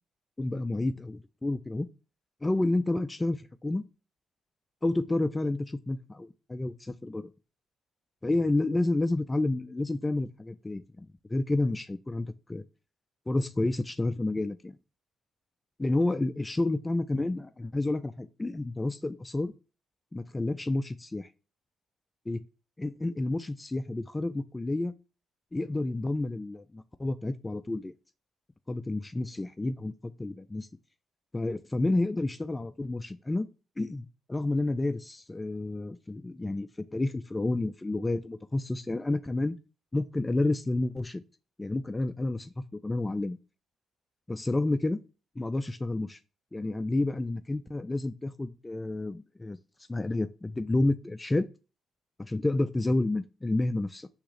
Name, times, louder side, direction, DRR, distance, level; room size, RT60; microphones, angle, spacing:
voice 1, 0.4-1.9 2.4-3.8 4.8-7.3 8.2-12.6 13.3-14.8 15.8-19.5 20.1-21.3 22.3-22.4 22.8-24.9 25.5-27.9 28.7-30.7 31.3-33.5 33.8-39.6 39.9-41.2 41.6-43.4 44.3-45.0 45.4-46.2 46.5-49.6 49.9-51.5 52.2-54.1, left 2 dB, 15° left, 11 dB, 0.3 m, -30 dB
3.7 x 2.9 x 4.8 m, 0.32 s
cardioid pair, 90°, 0 cm